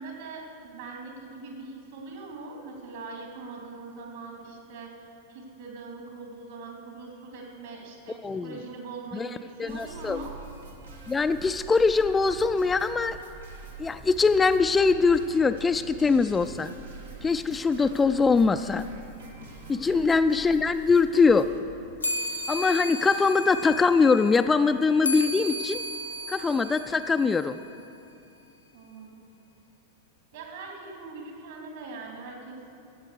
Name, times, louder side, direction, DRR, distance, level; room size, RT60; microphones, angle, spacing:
voice 1, 0.0-10.3 19.9-20.1 28.7-29.2 30.3-32.6, right 3 dB, 60° right, 0 dB, 2.8 m, -42 dB
voice 2, 9.6-10.2 11.1-13.2 13.8-16.7 17.2-18.8 19.7-21.5 22.5-25.8 26.3-27.6, left 4 dB, 15° left, 10 dB, 0.3 m, -22 dB
sound 1, 9.7-21.6, right 3 dB, 80° right, 1.9 m, -44 dB
Bell reverb, 22.0-27.8, left 1 dB, 80° left, 0.7 m, -34 dB
13.5 x 8.1 x 6.6 m, 2.7 s
figure-of-eight pair, 90°, 0 cm